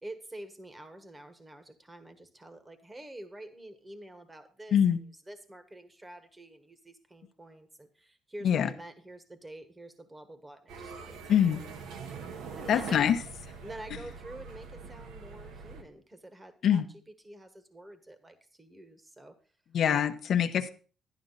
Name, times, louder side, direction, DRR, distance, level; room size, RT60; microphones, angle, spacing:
voice 1, 0.0-5.0 5.3-11.2 11.5-11.8 12.1-12.2 12.6-13.1 13.6-16.8 17.2-19.4 19.9-20.1, right 1 dB, 15° right, 9 dB, 1.4 m, -47 dB
sound 1, 10.7-15.8, right 5 dB, 80° right, 1.7 m, -43 dB
voice 2, 11.3-11.6 12.7-13.2 16.6-16.9 19.7-20.7, left 9 dB, 55° left, 8 dB, 0.9 m, -24 dB
12.0 x 11.5 x 4.0 m, 0.36 s
cardioid pair, 150°, 0 cm